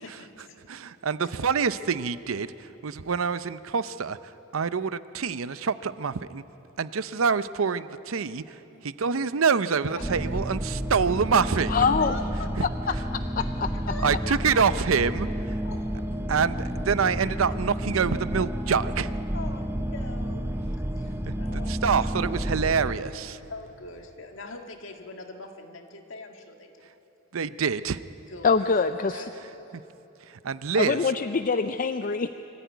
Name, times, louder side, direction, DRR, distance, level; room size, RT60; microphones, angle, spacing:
voice 1, 0.0-0.8 1.2-1.3 7.1-7.2 8.7-8.8 10.0-10.1 12.0-12.5 13.4-13.5 13.7-14.6 15.6-15.9 19.3-22.3 23.5-26.9 28.3-28.7 29.1-29.7, left 3 dB, 65° left, 4 dB, 1.8 m, -42 dB
voice 2, 0.7-6.4 6.8-11.9 12.6-12.7 14.0-15.6 16.3-19.1 21.3-23.4 27.3-28.0 29.7-29.8 30.2-31.1, right 5 dB, 80° right, 14 dB, 0.6 m, -26 dB
sound 1, 10.0-22.9, equal, 10° right, 0.7 m, -30 dB
voice 3, 11.7-12.2 12.6-12.9 13.6-13.7 28.4-29.3 30.8-32.3, left 5 dB, 40° left, 9 dB, 0.5 m, -24 dB
25.0 x 14.0 x 9.4 m, 3.0 s
head